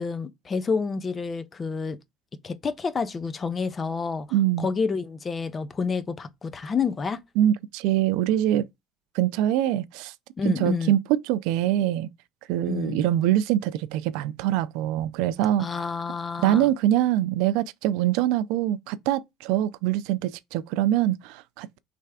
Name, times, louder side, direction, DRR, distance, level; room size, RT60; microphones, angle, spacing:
voice 1, 0.0-2.0 2.4-4.3 4.6-7.2 10.4-10.9 12.6-13.0 15.6-16.7, left 5 dB, 20° left, 0.4 m, -29 dB
voice 2, 4.3-4.7 7.4-8.7 9.1-10.1 10.5-12.1 12.5-15.7 16.4-21.8, right 12 dB, 70° right, 0.3 m, -24 dB
3.4 x 3.3 x 4.8 m
cardioid pair, 175°, 0 cm